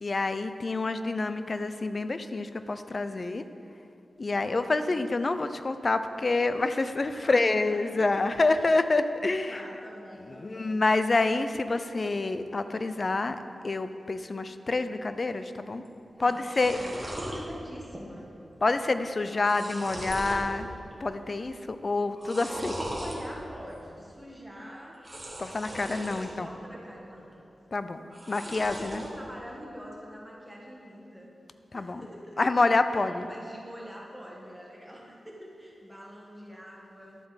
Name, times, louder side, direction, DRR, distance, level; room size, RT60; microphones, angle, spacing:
voice 1, 0.0-3.4 4.2-9.6 10.4-13.4 13.6-15.8 16.2-16.8 18.6-20.7 21.0-22.7 25.4-26.5 27.7-28.0 28.3-29.0 31.7-32.0 32.4-33.3, left 3 dB, 45° left, 10 dB, 0.4 m, -27 dB
voice 2, 7.1-8.7 9.4-10.7 16.1-16.4 16.7-18.3 22.7-25.0 26.0-27.3 28.4-31.3 31.7-32.4 32.9-37.2, equal, 5° right, -3 dB, 1.5 m, -45 dB
sound 1, 15.9-16.0 16.2-17.4 17.8-18.3 18.5-18.6 19.2-20.5 20.9-21.4 22.1-23.2 24.9-26.3 26.7-27.3 28.1-29.1, right 1 dB, 20° right, 1.7 m, -39 dB
11.5 x 7.8 x 4.0 m, 2.6 s
wide cardioid pair, 90°, 0 cm